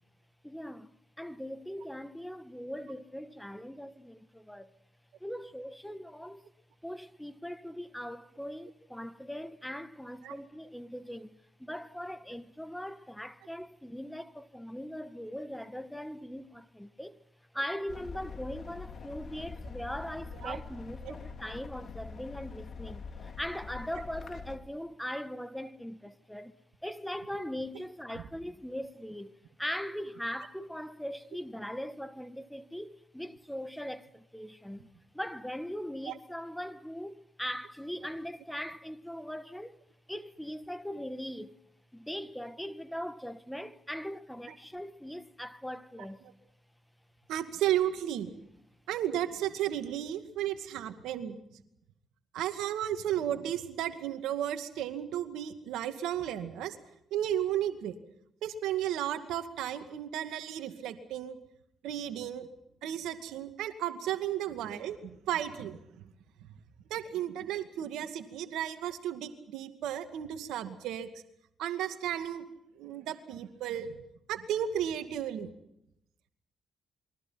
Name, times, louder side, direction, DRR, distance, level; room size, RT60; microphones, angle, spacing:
voice 1, 0.4-4.7 5.2-6.4 6.8-17.2 17.5-26.5 26.8-34.9 35.1-39.8 40.1-41.6 41.9-46.2, equal, 5° left, 1.5 m, -40 dB
sound 1, 17.9-24.6, left 5 dB, 55° left, 2.7 m, -44 dB
voice 2, 47.3-48.3 48.9-51.4 52.3-56.8 57.1-57.9 58.4-61.4 61.8-62.5 62.8-65.8 66.4-66.5 66.9-71.1 71.6-72.4 72.8-73.9 74.3-75.5, right 11 dB, 80° right, 2.2 m, -34 dB
28.0 x 22.5 x 5.9 m
supercardioid pair, 55°, 0 cm